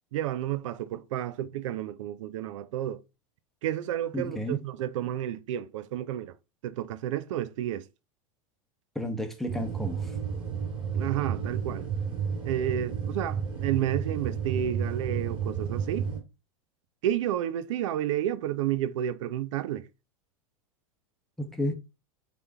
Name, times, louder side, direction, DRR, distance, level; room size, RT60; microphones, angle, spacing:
voice 1, 0.1-3.0 3.6-6.3 6.6-7.8 10.9-11.9 12.4-16.1 17.0-19.9, right 11 dB, 60° right, 0.5 m, -31 dB
voice 2, 4.1-4.6 8.9-10.1 21.4-21.8, equal, ahead, 0.8 m, -32 dB
sound 1, 9.5-16.2, right 7 dB, 25° right, 2.3 m, -32 dB
4.1 x 3.5 x 3.3 m
figure-of-eight pair, 90°, 18 cm